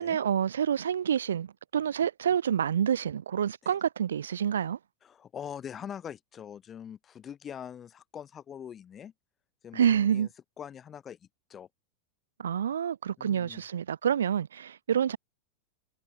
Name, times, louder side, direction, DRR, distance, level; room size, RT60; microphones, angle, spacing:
voice 1, 0.0-4.8 9.7-10.3 12.4-15.2, right 8 dB, 65° right, 0.5 m, -28 dB
voice 2, 5.0-9.1 9.6-10.3 10.6-11.7 13.2-13.6, left 8 dB, 25° left, 2.5 m, -43 dB
figure-of-eight pair, 90°, 0 cm